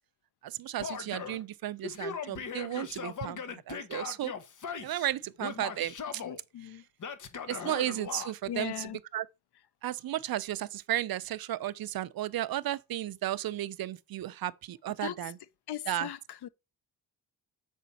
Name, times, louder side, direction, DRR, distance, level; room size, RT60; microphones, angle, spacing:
voice 1, 0.4-4.3 4.8-6.2 7.5-8.7 9.1-9.2 9.8-15.3 15.9-16.1, right 13 dB, 65° right, 0.5 m, -34 dB
Male speech man speaking / Yell, 0.8-1.4 1.8-5.1 5.4-6.4 7.0-8.3, left 6 dB, 50° left, 1.0 m, -39 dB
voice 2, 6.2-6.8 7.4-7.5 8.5-9.0 15.0-15.3 15.7-16.5, left 11 dB, 80° left, 0.7 m, -39 dB
7.3 x 5.0 x 4.1 m
wide cardioid pair, 150°, 39 cm